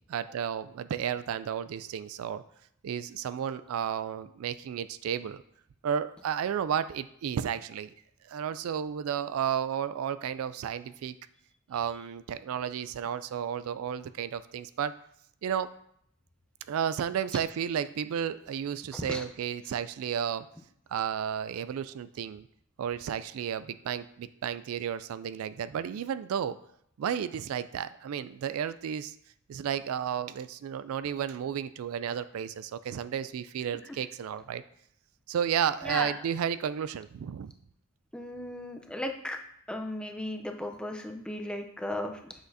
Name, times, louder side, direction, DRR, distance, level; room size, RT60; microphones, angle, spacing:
voice 1, 0.1-2.4 2.8-5.4 5.8-7.9 8.2-11.2 11.7-14.9 15.4-15.7 16.7-20.5 20.9-22.5 22.8-26.6 27.0-29.1 29.5-34.6 35.3-37.5, right 8 dB, 70° right, 13 dB, 0.3 m, -32 dB
voice 2, 38.1-39.4 39.7-42.3, left 1 dB, 5° left, 4 dB, 0.5 m, -36 dB
7.9 x 6.2 x 2.7 m, 0.71 s
head